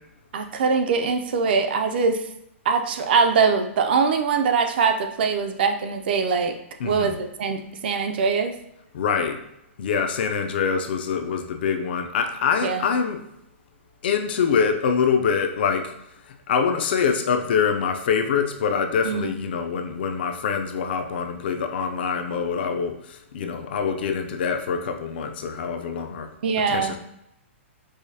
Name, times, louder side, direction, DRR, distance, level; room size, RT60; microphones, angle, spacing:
voice 1, 0.3-2.2 2.7-6.6 6.8-8.5 12.6-12.9 19.0-19.4 26.4-27.0, right 5 dB, 50° right, 6 dB, 0.4 m, -22 dB
voice 2, 6.8-7.1 8.9-9.4 9.8-13.2 14.0-15.9 16.5-23.0 23.3-26.3 26.7-27.0, left 6 dB, 50° left, 6 dB, 0.4 m, -24 dB
4.8 x 2.1 x 2.7 m, 0.80 s
hypercardioid pair, 170°, 7 cm